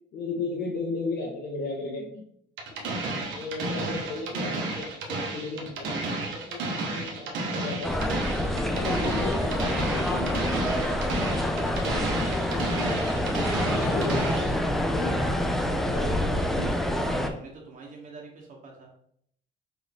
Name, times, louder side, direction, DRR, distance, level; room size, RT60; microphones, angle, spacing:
voice 1, 0.1-2.2 2.8-8.1 8.4-10.9 11.2-13.0 13.4-16.7, left 3 dB, 60° left, -2 dB, 1.0 m, -36 dB
sound 1, 2.6-14.6, right 2 dB, 80° right, 1.1 m, -32 dB
sound 2, 7.8-17.3, left 1 dB, ahead, 0.3 m, -27 dB
voice 2, 17.0-19.0, right 4 dB, 45° right, 0 dB, 0.9 m, -45 dB
6.0 x 2.6 x 3.4 m, 0.68 s
cardioid pair, 160°, 19 cm